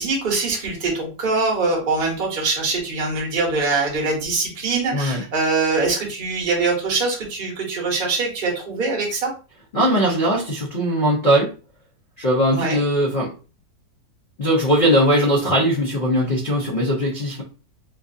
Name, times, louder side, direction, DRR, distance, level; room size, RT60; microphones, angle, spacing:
voice 1, 0.0-9.3 12.5-12.8, right 3 dB, 40° right, -1 dB, 0.9 m, -23 dB
voice 2, 4.9-5.2 9.7-11.5 12.2-13.3 14.4-17.4, equal, 55° left, -3 dB, 0.5 m, -19 dB
3.1 x 2.4 x 2.5 m, 0.35 s
omnidirectional pair, 1.9 m